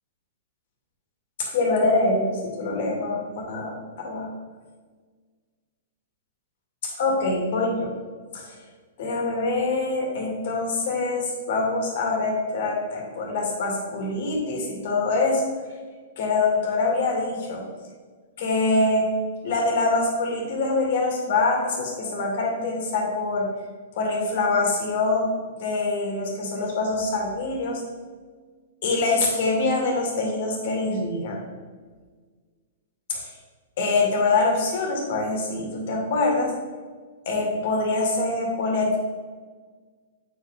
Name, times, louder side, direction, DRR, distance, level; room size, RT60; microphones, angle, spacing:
voice 1, 1.4-4.3 6.8-7.9 8.3-8.6 9.0-15.4 16.2-17.6 18.4-19.1 19.4-23.5 24.0-25.3 25.6-27.8 28.8-31.4 33.1-33.3 33.8-36.5 37.3-39.0, left 3 dB, 60° left, 0 dB, 2.2 m, -24 dB
8.2 x 5.0 x 4.0 m, 1.5 s
hypercardioid pair, 130°, 0 cm